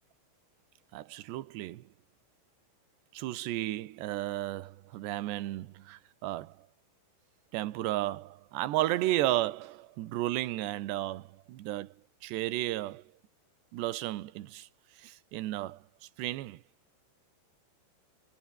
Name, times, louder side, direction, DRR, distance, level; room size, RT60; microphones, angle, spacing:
voice 1, 0.9-1.9 3.1-6.7 7.5-11.9 12.2-13.0 13.7-14.7 15.0-15.8 16.2-16.6, right 15 dB, 80° right, 3.4 m, -33 dB
omnidirectional pair, 4.9 m